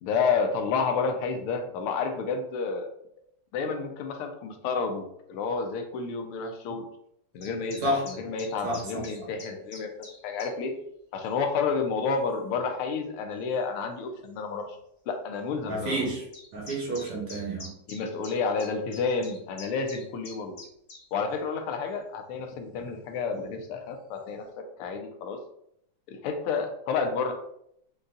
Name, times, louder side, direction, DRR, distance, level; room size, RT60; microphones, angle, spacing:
voice 1, 0.0-2.9 3.5-6.9 7.3-9.9 10.2-10.8 11.1-14.8 15.1-16.1 17.9-20.6 21.1-24.4 24.8-25.4 26.1-27.3, left 5 dB, 80° left, 5 dB, 1.6 m, -30 dB
sound 1, 7.4-10.5 11.2-11.4 12.3-12.4 13.5-13.6 13.9-14.0 14.3-14.4 16.0-21.0, left 2 dB, 35° left, 1.0 m, -45 dB
voice 2, 8.6-9.0 15.7-16.2 16.5-17.7, right 1 dB, 85° right, -2 dB, 2.2 m, -29 dB
5.2 x 2.3 x 3.9 m, 0.73 s
omnidirectional pair, 2.4 m